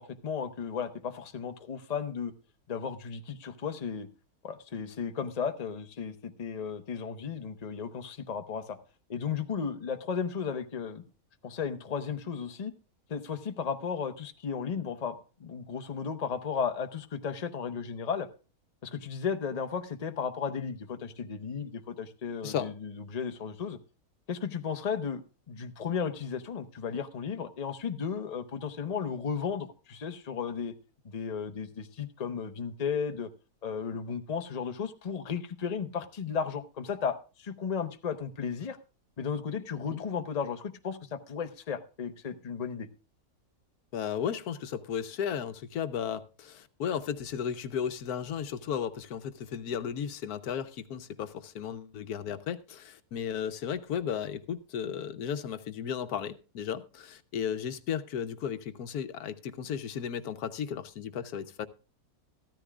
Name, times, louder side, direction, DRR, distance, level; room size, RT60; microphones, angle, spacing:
voice 1, 0.0-2.3 2.7-4.1 4.4-8.8 9.1-11.0 11.4-12.7 13.1-18.3 18.8-23.8 24.3-25.2 25.5-30.7 31.0-33.3 33.6-38.8 39.2-42.9, left 6 dB, 30° left, 0.8 m, -34 dB
voice 2, 43.9-61.7, left 8 dB, 80° left, 1.3 m, -34 dB
14.0 x 13.5 x 2.4 m
omnidirectional pair, 1.6 m